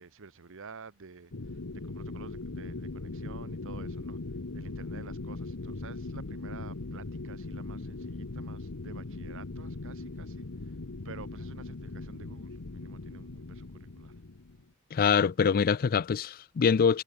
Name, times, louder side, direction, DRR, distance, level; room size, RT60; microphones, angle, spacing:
voice 1, 0.0-1.6 1.9-4.2 4.5-10.8 11.0-14.2, right 5 dB, 65° right, 1.0 m, -50 dB
sound 1, 1.3-14.6, left 2 dB, 65° left, 1.0 m, -40 dB
voice 2, 14.9-17.0, left 6 dB, 40° left, 0.4 m, -24 dB
head